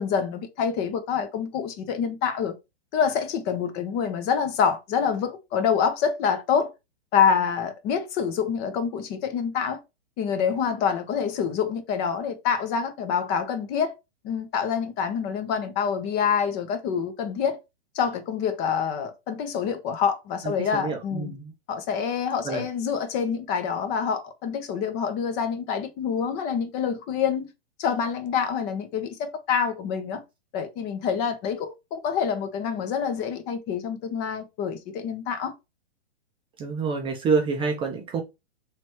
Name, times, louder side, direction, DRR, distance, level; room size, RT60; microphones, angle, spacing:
voice 1, 0.0-2.5 2.9-6.7 7.1-9.8 10.2-13.9 14.2-17.6 17.9-21.3 21.7-27.5 27.8-30.2 30.5-35.5, left 7 dB, 30° left, 0.7 m, -26 dB
voice 2, 20.6-21.5 22.4-22.6 36.6-38.2, right 5 dB, 15° right, 0.5 m, -27 dB
3.2 x 3.0 x 4.5 m
hypercardioid pair, 130°, 32 cm